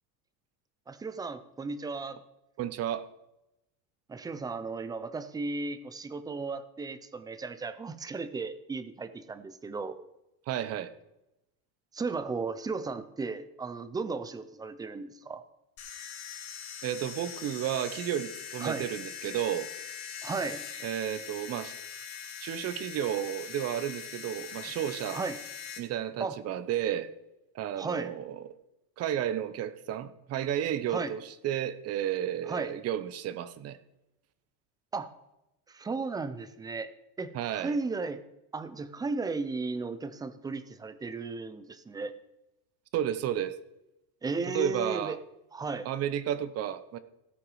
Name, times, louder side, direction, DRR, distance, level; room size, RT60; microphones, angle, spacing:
voice 1, 0.9-2.2 4.1-10.0 11.9-15.4 18.6-18.9 20.2-20.6 24.6-24.7 25.1-25.4 26.2-26.4 27.7-28.1 30.9-31.1 32.5-32.7 34.9-35.1 35.7-36.9 37.2-38.2 38.5-42.1 44.2-45.2 45.5-45.9, right 4 dB, 10° right, 0.4 m, -35 dB
voice 2, 2.6-3.1 10.5-10.9 16.8-19.7 20.8-21.7 22.4-25.2 25.8-27.1 27.5-28.4 29.0-33.8 37.3-37.7 42.9-43.6 44.5-45.2 45.8-47.0, right 10 dB, 35° right, 0.8 m, -32 dB
sound 1, 15.8-25.8, left 7 dB, 75° left, 2.7 m, -42 dB
17.0 x 6.0 x 4.7 m
cardioid pair, 150°, 42 cm